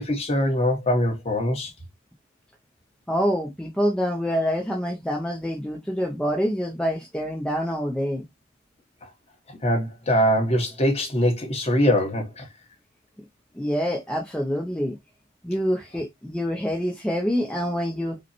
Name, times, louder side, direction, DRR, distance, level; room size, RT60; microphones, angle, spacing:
voice 1, 0.0-1.7 9.5-12.5, equal, 30° left, 0.9 m, -23 dB
voice 2, 3.1-8.2 13.6-15.0 15.4-18.2, equal, 5° left, 0.4 m, -26 dB
5.0 x 2.1 x 2.8 m
head